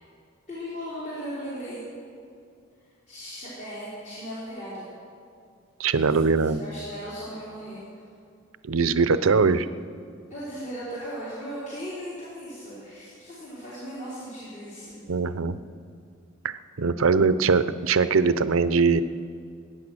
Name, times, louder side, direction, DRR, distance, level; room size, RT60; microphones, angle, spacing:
voice 1, 0.5-1.8 3.1-4.9 5.9-8.0 10.3-14.9, equal, 40° left, -10 dB, 4.1 m, -37 dB
voice 2, 5.8-6.6 8.6-9.7 15.1-15.6 16.4-19.0, right 4 dB, 85° right, 13 dB, 0.6 m, -22 dB
21.5 x 9.3 x 6.3 m, 2.4 s
head